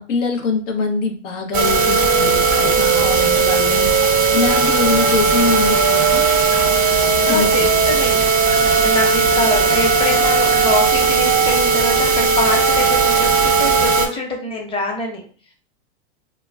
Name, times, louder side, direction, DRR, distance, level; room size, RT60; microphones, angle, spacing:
voice 1, 0.0-3.9 4.3-6.3 7.3-7.7, left 4 dB, 75° left, 4 dB, 0.7 m, -23 dB
sound 1, 1.5-14.1, right 4 dB, 25° right, 0.5 m, -16 dB
voice 2, 7.3-15.2, left 2 dB, 15° left, 0 dB, 0.8 m, -25 dB
2.2 x 2.1 x 3.4 m, 0.42 s
hypercardioid pair, 100°, 37 cm